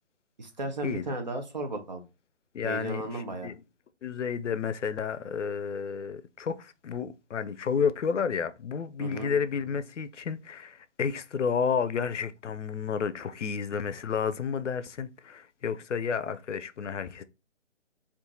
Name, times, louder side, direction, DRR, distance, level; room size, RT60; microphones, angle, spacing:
voice 1, 0.4-2.0 2.6-3.5 9.0-9.3, right 2 dB, 40° right, 0.6 m, -35 dB
voice 2, 2.5-3.5 4.0-17.2, left 6 dB, 80° left, 0.5 m, -31 dB
2.6 x 2.5 x 3.6 m
figure-of-eight pair, 145°, 36 cm